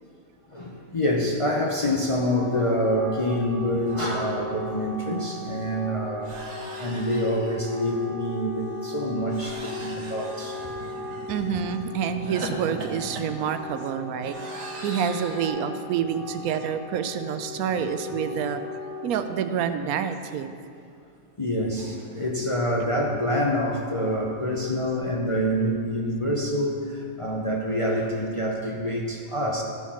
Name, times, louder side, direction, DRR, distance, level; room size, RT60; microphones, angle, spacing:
voice 1, 0.5-6.4 6.8-10.7 21.4-29.6, equal, 30° left, -2 dB, 0.6 m, -26 dB
Wind instrument woodwind instrument, 2.2-19.6, left 3 dB, 70° left, 2.3 m, -37 dB
sound 1, 4.8-4.9 5.2-5.4 6.2-7.9 9.3-11.5 12.2-15.5, right 2 dB, 55° right, 1.3 m, -41 dB
voice 2, 10.7-20.5, right 8 dB, 80° right, 9 dB, 1.0 m, -28 dB
13.5 x 4.6 x 5.7 m, 2.3 s
omnidirectional pair, 1.5 m